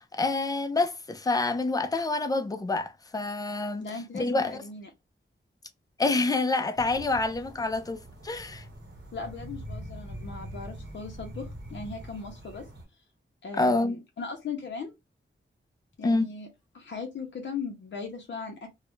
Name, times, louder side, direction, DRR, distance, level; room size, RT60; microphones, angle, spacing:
voice 1, 0.0-3.9 4.1-4.6 6.0-8.6 13.5-14.0 16.0-16.3, left 3 dB, 20° left, 0.3 m, -27 dB
voice 2, 3.8-4.9 9.1-12.7 13.4-14.9 16.0-16.5 16.7-18.7, left 4 dB, 60° left, 0.6 m, -38 dB
sound 1, 6.7-12.8, right 1 dB, 55° right, 0.9 m, -43 dB
2.3 x 2.0 x 3.0 m
wide cardioid pair, 125°, 21 cm